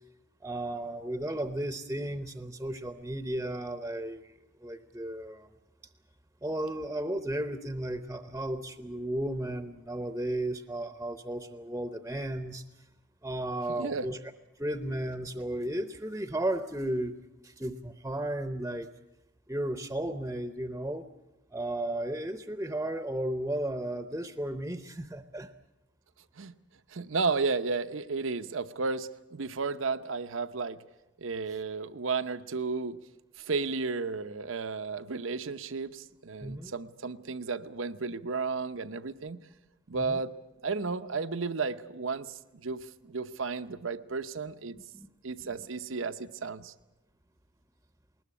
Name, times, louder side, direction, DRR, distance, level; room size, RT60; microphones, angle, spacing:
voice 1, 0.4-4.3 4.6-5.5 6.4-12.6 13.2-14.2 14.6-18.9 19.5-21.1 21.5-25.5 36.4-36.7 39.9-40.2 44.9-45.1, right 1 dB, 15° right, 10 dB, 0.7 m, -34 dB
voice 2, 13.7-14.1 26.4-26.5 26.9-30.8 31.2-33.0 33.4-39.4 39.9-40.3 40.6-44.8 45.2-46.7, right 4 dB, 90° right, 12 dB, 0.8 m, -33 dB
20.5 x 19.5 x 8.5 m, 0.97 s
head